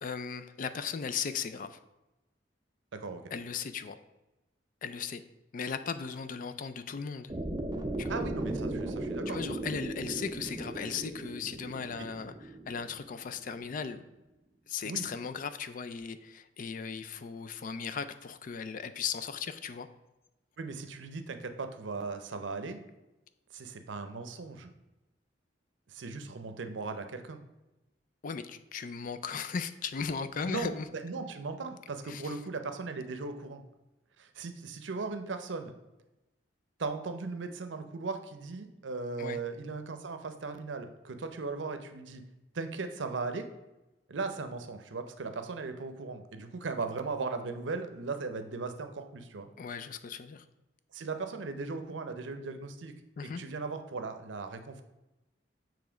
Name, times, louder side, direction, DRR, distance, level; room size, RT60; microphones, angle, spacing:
voice 1, 0.0-1.8 3.3-4.0 4.8-5.2 5.5-7.3 8.0-8.2 9.3-12.3 12.7-14.0 14.7-19.9 28.2-30.9 32.1-32.3 39.2-39.4 49.6-50.4 53.2-53.4, left 6 dB, 45° left, 11 dB, 0.4 m, -37 dB
voice 2, 2.9-3.2 8.1-9.4 12.0-12.1 14.8-15.1 20.6-22.8 23.5-24.7 25.9-27.4 30.4-33.6 34.2-35.7 36.8-42.2 42.5-43.5 44.1-49.5 50.9-52.9 53.2-54.8, right 4 dB, 85° right, 8 dB, 0.6 m, -38 dB
sound 1, 7.3-13.4, right 2 dB, 25° right, 0.5 m, -37 dB
7.0 x 3.1 x 4.9 m, 1.0 s
head